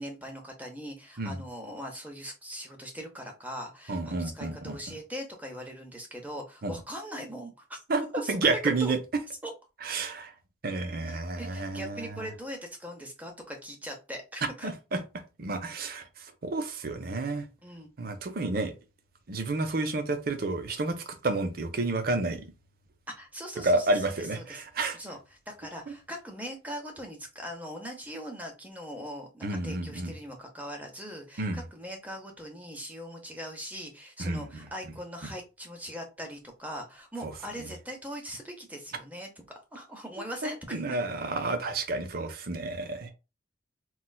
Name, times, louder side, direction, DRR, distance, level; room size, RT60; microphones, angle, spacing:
voice 1, 0.0-7.8 8.1-8.4 8.8-8.9 9.4-9.5 11.1-14.7 17.6-17.9 23.2-24.6 24.9-25.2 25.5-39.3 39.7-41.0, equal, 10° right, 0.7 m, -41 dB
voice 2, 3.9-4.8 6.6-6.7 7.9-9.0 9.8-10.3 10.6-12.3 14.6-15.0 15.4-16.1 16.4-17.5 18.0-18.7 19.3-22.5 23.6-25.0 29.4-30.1 31.4-31.6 34.2-34.6 37.2-37.3 40.4-43.1, right 2 dB, 50° right, 0.6 m, -30 dB
4.2 x 2.3 x 2.3 m
head